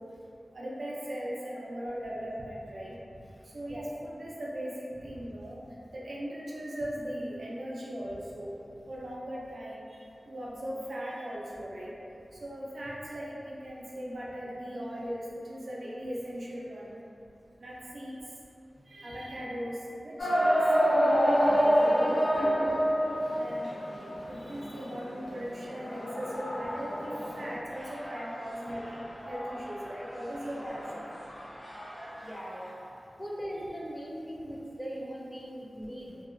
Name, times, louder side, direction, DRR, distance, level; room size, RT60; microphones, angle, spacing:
voice 1, 0.5-3.0 3.5-4.7 5.0-5.6 5.9-8.5 8.9-9.9 10.3-11.9 12.4-17.0 17.6-18.1 18.9-22.9 23.4-23.7 24.3-31.0, equal, 80° right, -6 dB, 0.4 m, -39 dB
sound 1, 20.2-27.6, equal, 85° left, 0.6 m, -26 dB
sound 2, 27.7-33.0, equal, 40° left, 1.0 m, -44 dB
voice 2, 30.5-30.9 32.2-32.7 33.2-36.2, equal, 15° left, -4 dB, 0.4 m, -40 dB
2.6 x 2.1 x 2.5 m, 2.6 s
wide cardioid pair, 60°, 0 cm